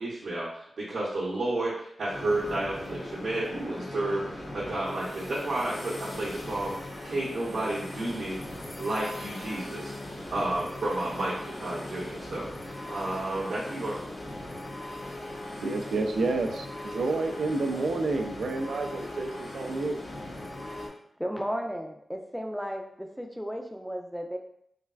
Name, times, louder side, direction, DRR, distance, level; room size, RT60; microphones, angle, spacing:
voice 1, 0.0-8.4 8.8-14.0, right 2 dB, 75° right, -8 dB, 0.7 m, -32 dB
sound 1, 2.1-20.9, left 1 dB, 60° left, 0.7 m, -39 dB
voice 2, 15.6-20.0, right 3 dB, 90° right, 4 dB, 0.3 m, -29 dB
voice 3, 21.2-24.4, equal, ahead, 3 dB, 0.4 m, -34 dB
3.3 x 2.3 x 2.3 m, 0.69 s
wide cardioid pair, 95°, 0 cm